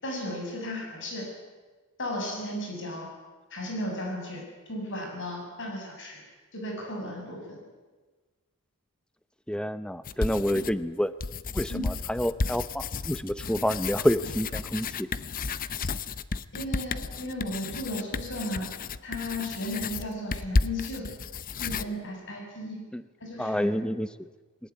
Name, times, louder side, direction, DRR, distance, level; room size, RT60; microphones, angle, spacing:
voice 1, 0.0-1.3 2.0-3.1 3.5-4.4 4.7-6.2 6.5-7.6 11.7-11.9 16.5-18.7 19.0-21.1 21.6-22.8 23.2-23.7, left 1 dB, 60° left, 1 dB, 7.1 m, -35 dB
voice 2, 9.5-11.1 11.5-15.1 22.9-23.0 23.4-24.3, equal, 5° left, 14 dB, 0.7 m, -28 dB
sound 1, 10.0-10.8 11.2-21.9, left 4 dB, 40° left, 0.7 m, -32 dB
20.5 x 19.5 x 9.6 m, 1.3 s
head